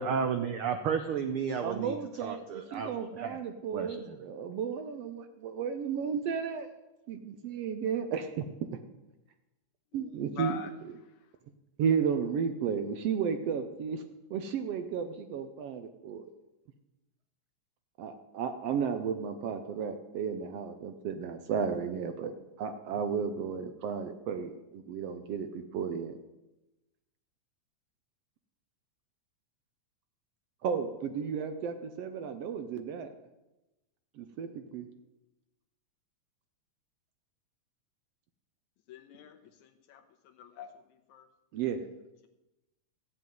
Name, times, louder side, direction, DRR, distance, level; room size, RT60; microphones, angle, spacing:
voice 1, 0.0-3.4 3.7-4.2, right 6 dB, 90° right, 7 dB, 1.2 m, -33 dB
voice 2, 1.6-6.7 7.1-8.3 9.9-10.6 10.8-10.9 11.8-14.0 14.3-16.3 18.0-22.3 22.6-26.2 30.6-33.1 34.2-34.9 41.5-41.9, right 7 dB, 70° right, 8 dB, 1.6 m, -33 dB
voice 3, 9.9-10.7 38.9-40.0 40.4-40.7 41.1-41.2, left 9 dB, 80° left, 6 dB, 2.5 m, -44 dB
14.5 x 6.2 x 9.2 m, 1.0 s
omnidirectional pair, 3.3 m